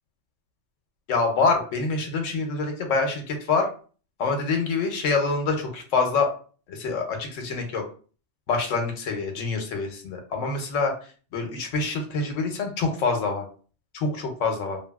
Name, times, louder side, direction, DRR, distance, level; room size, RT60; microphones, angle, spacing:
voice 1, 1.1-3.7 4.2-6.3 6.7-7.8 8.5-10.9 11.3-13.4 13.9-14.8, left 4 dB, 90° left, 4 dB, 1.0 m, -26 dB
2.6 x 2.5 x 2.2 m, 0.40 s
omnidirectional pair, 1.3 m